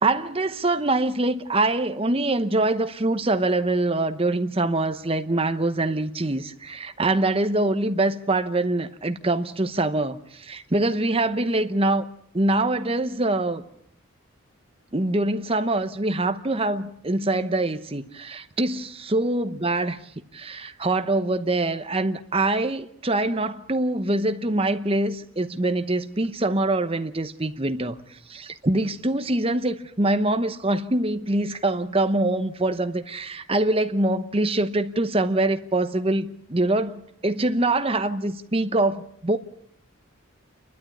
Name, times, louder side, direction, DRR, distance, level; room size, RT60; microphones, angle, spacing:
voice 1, 0.0-12.1 12.3-13.6 14.9-19.9 20.3-39.4, right 2 dB, 25° right, 0.9 m, -24 dB
29.0 x 12.0 x 8.5 m
head